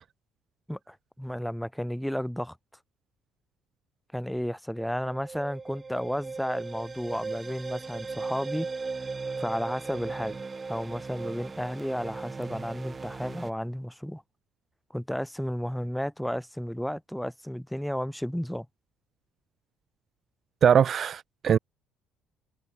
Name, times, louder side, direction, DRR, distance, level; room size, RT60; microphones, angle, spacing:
voice 1, 0.7-2.6 4.1-8.7 9.4-10.4 10.7-14.2 14.9-18.7, equal, ahead, 4.1 m, -33 dB
sound 1, 5.1-13.5, right 4 dB, 30° right, 6.3 m, -37 dB
voice 2, 20.6-21.6, right 8 dB, 50° right, 1.5 m, -21 dB
supercardioid pair, 70°, 0 cm